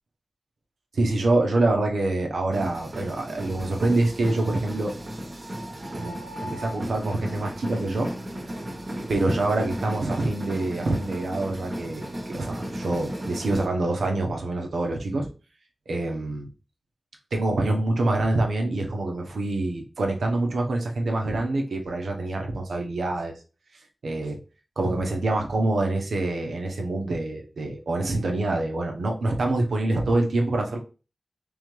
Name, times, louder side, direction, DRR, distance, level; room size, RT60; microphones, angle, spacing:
voice 1, 0.9-4.9 5.9-8.1 9.1-15.3 15.9-16.5 17.3-23.3 24.0-24.4 24.8-30.8, right 2 dB, 90° right, 2 dB, 0.9 m, -26 dB
sound 1, 2.5-13.7, equal, 50° right, 1.1 m, -35 dB
3.7 x 3.5 x 3.2 m, 0.34 s
cardioid pair, 45°, 0 cm